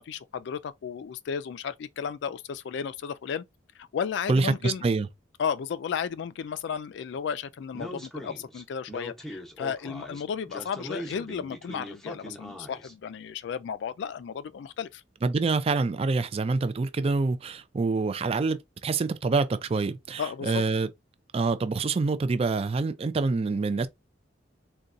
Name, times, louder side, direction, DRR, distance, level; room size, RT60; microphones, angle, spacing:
voice 1, 0.0-3.4 3.8-4.8 5.4-15.0 20.2-20.6, left 7 dB, 65° left, 0.3 m, -34 dB
voice 2, 4.3-5.1 15.2-20.9 21.3-23.9, right 3 dB, 30° right, 0.3 m, -26 dB
Speech, 7.7-12.9, equal, ahead, 0.8 m, -40 dB
3.9 x 2.2 x 2.5 m
head